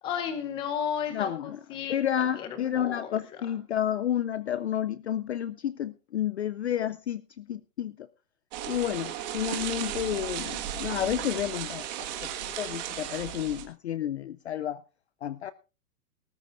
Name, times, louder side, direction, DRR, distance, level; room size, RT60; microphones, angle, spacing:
voice 1, 0.0-3.5, left 8 dB, 10° left, 10 dB, 0.9 m, -34 dB
voice 2, 1.1-1.6 1.9-8.1 8.7-11.9 12.2-14.8 15.2-15.5, left 10 dB, 45° left, 15 dB, 0.5 m, -31 dB
sound 1, 8.5-13.6, right 10 dB, 30° right, 1.6 m, -35 dB
19.0 x 13.0 x 2.5 m, 0.31 s
hypercardioid pair, 165°, 47 cm